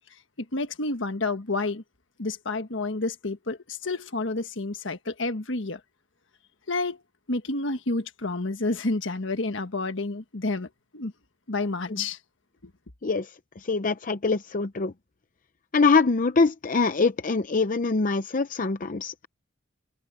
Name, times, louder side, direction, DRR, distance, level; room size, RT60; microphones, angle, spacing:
voice 1, 0.5-1.8 2.2-5.8 6.7-7.0 7.3-11.1 11.5-12.2 12.6-12.7, left 2 dB, 65° left, 1.5 m, -29 dB
voice 2, 13.7-14.9 15.7-19.3, left 4 dB, 40° left, 0.6 m, -23 dB
head